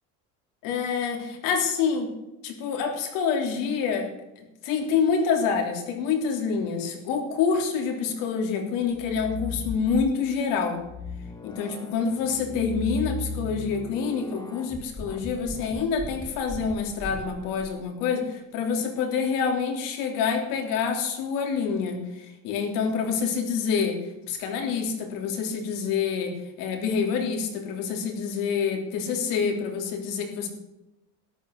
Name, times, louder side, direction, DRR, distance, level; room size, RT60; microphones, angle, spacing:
voice 1, 0.6-2.1 2.4-4.1 4.6-10.8 11.4-24.0 24.3-30.5, left 6 dB, 70° left, 3 dB, 3.3 m, -27 dB
sound 1, 8.8-10.2 10.8-17.7, left 2 dB, 10° left, 1.2 m, -37 dB
13.0 x 11.0 x 6.5 m, 0.95 s
cardioid pair, 165°, 34 cm